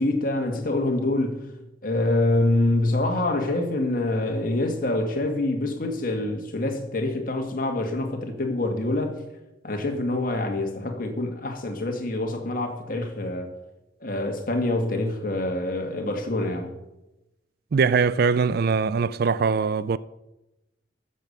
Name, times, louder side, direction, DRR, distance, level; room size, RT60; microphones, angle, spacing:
voice 1, 0.0-1.5 1.8-9.2 9.6-13.5 14.0-16.7, left 2 dB, 50° left, 1.9 m, -26 dB
voice 2, 17.7-20.0, right 5 dB, 55° right, 0.4 m, -22 dB
14.0 x 7.0 x 6.9 m
head